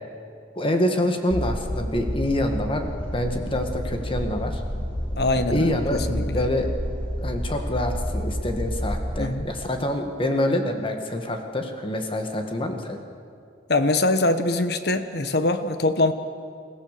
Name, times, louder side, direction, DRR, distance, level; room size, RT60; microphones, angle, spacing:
voice 1, 0.6-4.6 5.5-6.7 7.2-13.0, left 1 dB, 30° left, 5 dB, 1.8 m, -26 dB
sound 1, 1.3-9.3, equal, 10° left, 2.3 m, -30 dB
voice 2, 5.2-6.4 9.2-9.5 13.7-16.1, left 2 dB, 65° left, 10 dB, 1.3 m, -23 dB
28.5 x 15.5 x 6.8 m, 2.4 s
head